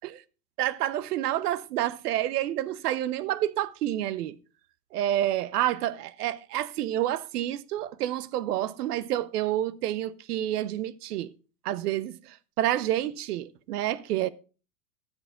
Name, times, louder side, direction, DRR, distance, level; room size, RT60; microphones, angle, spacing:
voice 1, 0.6-4.4 4.9-11.3 11.6-12.1 12.6-14.3, right 13 dB, 75° right, 0.9 m, -28 dB
15.0 x 7.9 x 3.7 m
hypercardioid pair, 115°, 47 cm